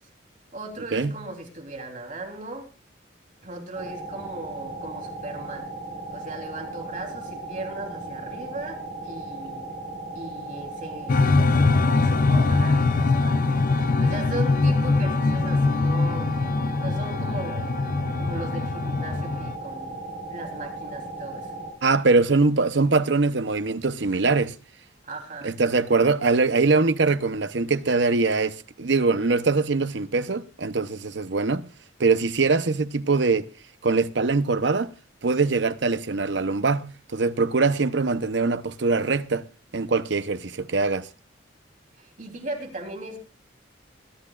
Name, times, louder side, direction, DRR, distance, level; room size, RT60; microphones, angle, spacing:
voice 1, 0.5-2.6 3.4-5.7 6.1-9.7 10.1-13.3 14.0-16.3 16.8-17.7 18.2-20.0 20.3-21.5 25.0-25.5 42.0-43.2, right 2 dB, 45° right, 3.4 m, -37 dB
sound 1, 3.7-21.7, right 2 dB, 25° right, 5.4 m, -37 dB
sound 2, 11.1-19.5, left 3 dB, 45° left, 0.5 m, -22 dB
voice 2, 21.8-24.5 25.4-31.6 32.0-33.5 33.8-34.9 35.2-39.4 39.7-41.1, right 3 dB, 70° right, 0.8 m, -22 dB
22.5 x 12.0 x 2.4 m
head